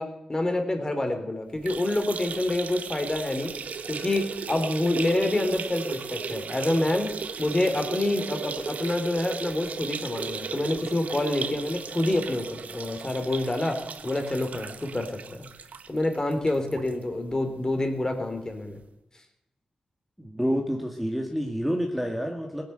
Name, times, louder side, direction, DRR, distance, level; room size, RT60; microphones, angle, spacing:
voice 1, 0.0-3.5 3.9-7.1 7.4-13.8 14.0-15.5 15.9-18.8, left 1 dB, 25° left, 6 dB, 3.4 m, -27 dB
sound 1, 1.5-16.9 17.3-17.4 17.7-17.8 18.8-18.9, right 6 dB, 70° right, 1.0 m, -36 dB
voice 2, 20.2-22.6, equal, ahead, 1 dB, 2.2 m, -28 dB
17.5 x 10.5 x 8.1 m, 0.88 s
cardioid pair, 70°, 3 cm